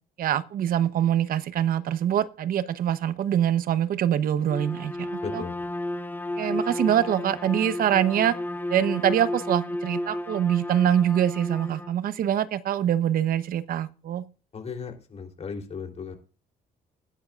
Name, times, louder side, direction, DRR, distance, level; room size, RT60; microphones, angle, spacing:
voice 1, 0.2-5.4 6.4-8.4 8.7-14.2, right 10 dB, 60° right, 0.9 m, -24 dB
Bowed string instrument, 4.4-12.0, left 1 dB, 10° left, 0.9 m, -33 dB
voice 2, 5.2-5.5 14.5-16.1, left 5 dB, 40° left, 3.5 m, -36 dB
20.0 x 10.5 x 2.5 m
cardioid pair, 110°, 17 cm